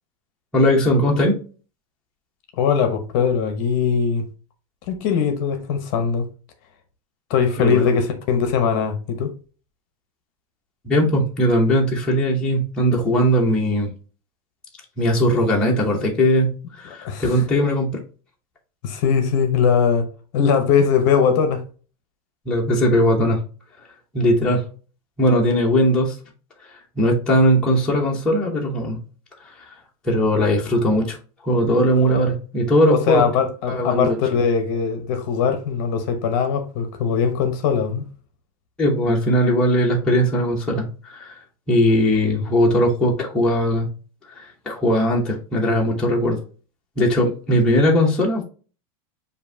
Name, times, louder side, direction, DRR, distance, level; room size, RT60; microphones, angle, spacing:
voice 1, 0.5-1.4 7.6-7.9 10.8-13.9 15.0-18.0 22.5-23.4 24.1-24.6 25.2-26.2 27.0-29.0 30.0-31.2 31.4-33.2 33.7-34.2 38.8-41.4 41.7-43.9 44.4-46.4 47.0-48.4, equal, 5° left, 0.7 m, -19 dB
voice 2, 2.6-4.3 4.9-6.3 7.3-9.3 16.9-17.4 18.8-20.1 20.3-21.6 32.1-32.3 32.9-38.0, left 6 dB, 35° left, 0.7 m, -20 dB
7.0 x 2.6 x 2.6 m
supercardioid pair, 175°, 19 cm